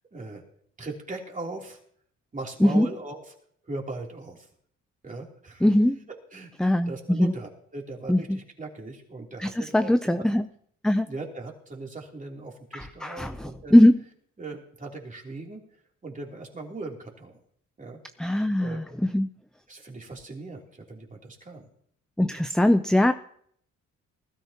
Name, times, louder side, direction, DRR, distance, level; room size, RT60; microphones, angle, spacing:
voice 1, 0.1-0.4 0.8-1.8 2.3-3.3 3.6-4.5 5.0-5.7 6.1-10.1 11.0-13.8 14.4-15.6 16.0-17.4 17.8-18.0 18.6-18.8 19.7-21.7 22.3-22.5, right 3 dB, 25° right, -1 dB, 3.2 m, -39 dB
voice 2, 5.6-6.0 6.6-7.3 8.1-8.2 9.4-10.5 10.8-11.1 12.7-14.0 18.2-18.8 19.1-19.3 22.2-23.1, left 1 dB, ahead, 10 dB, 0.5 m, -21 dB
20.0 x 13.0 x 2.9 m, 0.64 s
cardioid pair, 90°, 30 cm